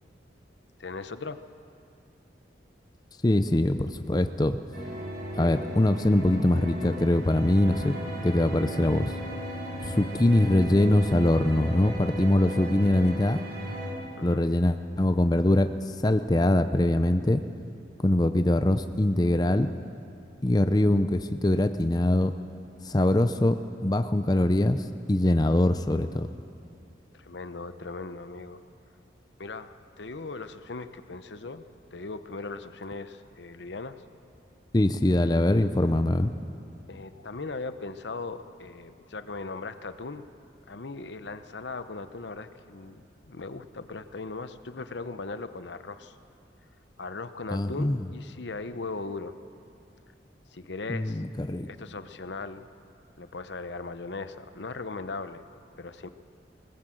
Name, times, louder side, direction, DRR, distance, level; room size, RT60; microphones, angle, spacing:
voice 1, 0.8-1.4 14.2-14.4 27.1-28.6 29.4-34.0 36.9-40.2 40.7-46.2 47.0-49.3 50.5-51.2 51.7-52.7 53.2-55.4 55.8-56.1, left 3 dB, 75° left, 11 dB, 0.8 m, -38 dB
voice 2, 3.2-4.6 5.3-7.9 8.2-9.1 9.8-13.4 14.2-15.7 16.0-17.4 18.0-19.7 20.4-22.3 22.8-23.6 23.8-26.3 34.7-36.3 47.5-48.0 50.9-51.7, left 1 dB, 20° left, 9 dB, 0.5 m, -23 dB
sound 1, 4.7-13.9, equal, 55° right, 6.0 m, -36 dB
20.0 x 19.5 x 7.7 m, 2.5 s
head